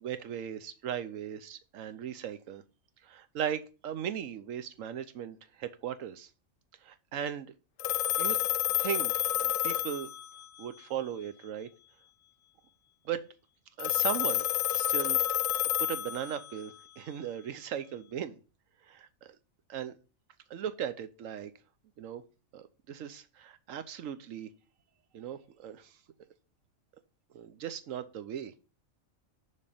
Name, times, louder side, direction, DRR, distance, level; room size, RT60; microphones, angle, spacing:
voice 1, 0.0-2.6 3.0-6.3 6.8-7.5 8.2-8.4 8.8-10.1 10.6-11.7 13.0-13.2 13.8-14.5 14.7-15.4 15.8-18.3 18.9-19.4 19.7-19.9 20.5-21.5 22.0-22.2 22.5-24.5 25.1-25.9 27.3-28.5, right 9 dB, 75° right, 12 dB, 1.1 m, -38 dB
Telephone, 7.8-10.7 13.8-16.6, left 13 dB, 75° left, 0.9 m, -29 dB
6.6 x 5.5 x 5.1 m, 0.33 s
omnidirectional pair, 1.4 m